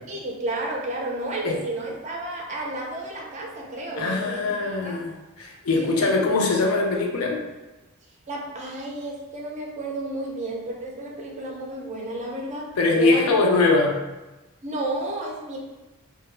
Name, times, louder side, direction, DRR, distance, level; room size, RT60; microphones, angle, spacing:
voice 1, 0.1-4.4 4.8-5.0 5.8-6.1 8.3-13.5 14.6-15.6, right 2 dB, 30° right, -1 dB, 0.4 m, -31 dB
voice 2, 4.0-7.4 12.8-14.0, left 3 dB, 75° left, 1 dB, 0.4 m, -22 dB
2.2 x 2.0 x 3.1 m, 1.1 s
head